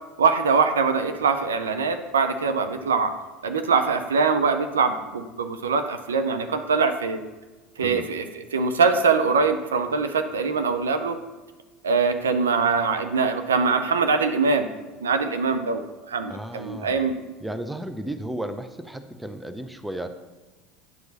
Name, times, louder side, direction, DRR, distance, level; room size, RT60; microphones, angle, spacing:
voice 1, 0.2-3.1 3.4-7.2 7.8-11.2 11.8-14.7 15.0-17.2, right 5 dB, 90° right, 8 dB, 0.6 m, -23 dB
voice 2, 16.3-20.1, right 1 dB, 5° right, 9 dB, 0.7 m, -34 dB
9.4 x 4.7 x 4.1 m, 1.2 s
hypercardioid pair, 80°, 0 cm